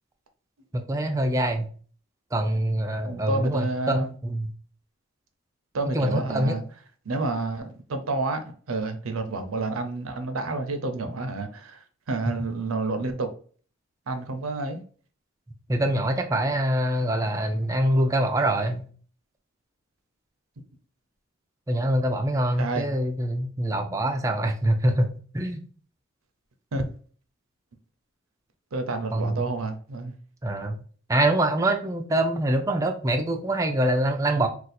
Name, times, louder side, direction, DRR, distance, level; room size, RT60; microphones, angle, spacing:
voice 1, 0.7-1.7 2.3-4.5 5.9-6.6 15.7-18.8 21.7-25.6 29.1-29.5 30.4-30.8 31.1-34.5, right 1 dB, 15° right, 0.4 m, -24 dB
voice 2, 3.0-4.1 5.7-6.6 7.1-11.8 12.1-13.3 14.1-14.8 22.6-22.9 26.7-26.9 28.7-30.2, right 3 dB, 80° right, 0.6 m, -29 dB
2.5 x 2.4 x 4.1 m
head